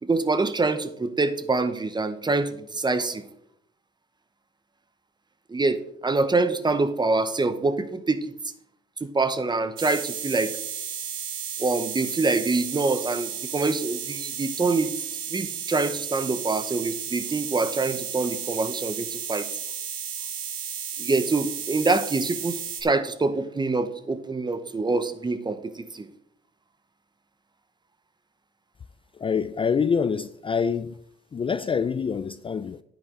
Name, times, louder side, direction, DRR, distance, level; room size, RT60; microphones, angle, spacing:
voice 1, 0.0-3.2 5.5-8.3 9.0-10.6 11.6-15.0 15.3-19.5 21.0-26.1, right 3 dB, 20° right, 0.8 m, -25 dB
sound 1, 9.8-22.8, right 8 dB, 75° right, 1.8 m, -33 dB
voice 2, 29.2-30.9 31.3-32.8, left 6 dB, 25° left, 0.4 m, -26 dB
10.0 x 8.5 x 3.8 m
cardioid pair, 90°, 20 cm